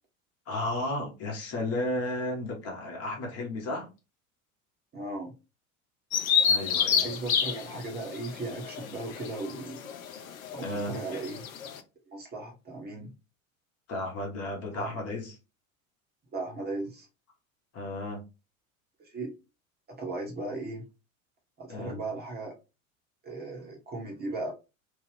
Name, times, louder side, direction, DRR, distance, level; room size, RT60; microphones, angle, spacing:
voice 1, 0.5-3.9 6.5-7.1 10.6-10.9 13.9-15.3 17.7-18.2 21.7-22.0, left 1 dB, 35° left, 1.1 m, -33 dB
voice 2, 4.9-5.3 7.0-9.8 10.5-11.4 12.1-13.1 14.7-14.9 16.3-17.1 19.0-19.3 20.0-20.8 21.6-22.5 23.2-24.5, right 2 dB, 25° right, 1.0 m, -37 dB
Bird vocalization bird call bird song, 6.1-11.8, left 7 dB, 70° left, 0.6 m, -29 dB
3.1 x 2.4 x 3.3 m
figure-of-eight pair, 75°, 42 cm